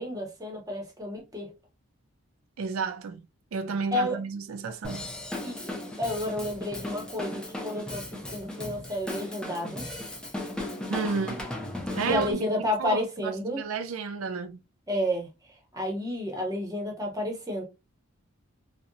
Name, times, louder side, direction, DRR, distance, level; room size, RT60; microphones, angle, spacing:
voice 1, 0.0-1.5 3.9-4.2 5.4-9.8 12.0-13.6 14.9-15.3 15.7-17.6, left 1 dB, 15° right, 0.7 m, -31 dB
voice 2, 2.6-3.2 3.5-5.1 10.9-11.5 11.9-14.6, right 5 dB, 65° right, 0.4 m, -32 dB
Drum kit / Drum, 4.8-12.3, left 1 dB, 5° left, 0.4 m, -36 dB
2.7 x 2.0 x 2.5 m
head